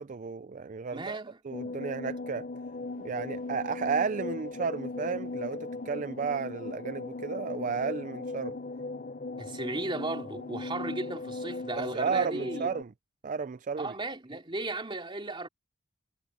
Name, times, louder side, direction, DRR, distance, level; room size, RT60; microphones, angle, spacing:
voice 1, 0.0-1.2 1.4-2.5 3.0-8.5 11.8-12.9 13.2-13.9, right 5 dB, 40° right, 0.4 m, -33 dB
voice 2, 0.9-1.4 9.3-12.7 13.8-15.5, right 2 dB, 25° right, 2.9 m, -35 dB
sound 1, 1.5-12.8, left 3 dB, 45° left, 0.9 m, -38 dB
head